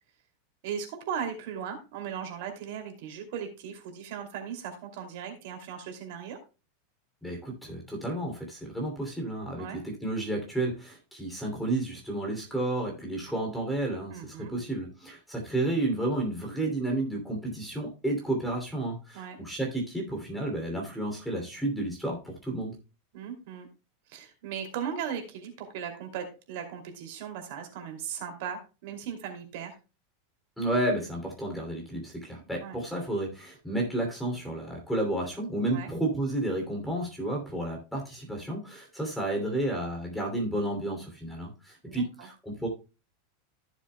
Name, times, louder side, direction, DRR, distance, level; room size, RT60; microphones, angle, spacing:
voice 1, 0.6-6.4 9.6-9.8 14.1-14.6 19.1-19.4 23.1-23.7 24.1-29.8 32.6-32.8 35.7-35.9 41.8-42.3, right 8 dB, 60° right, 4 dB, 2.6 m, -37 dB
voice 2, 7.2-22.8 30.6-42.7, right 1 dB, 5° left, 1 dB, 2.8 m, -31 dB
14.5 x 7.2 x 2.2 m, 0.31 s
supercardioid pair, 150°, 0 cm